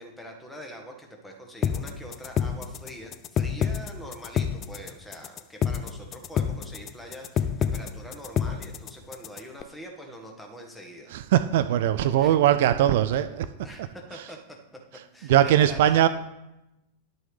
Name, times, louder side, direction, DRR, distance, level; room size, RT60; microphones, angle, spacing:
voice 1, 0.0-11.1 12.2-12.4 13.6-14.6 15.1-16.1, equal, 5° left, 2 dB, 1.4 m, -43 dB
sound 1, 1.6-9.6, left 8 dB, 30° left, 0.4 m, -28 dB
voice 2, 11.1-13.5 15.3-16.1, right 11 dB, 55° right, 11 dB, 0.3 m, -20 dB
10.5 x 6.2 x 3.3 m, 0.94 s
figure-of-eight pair, 90°, 0 cm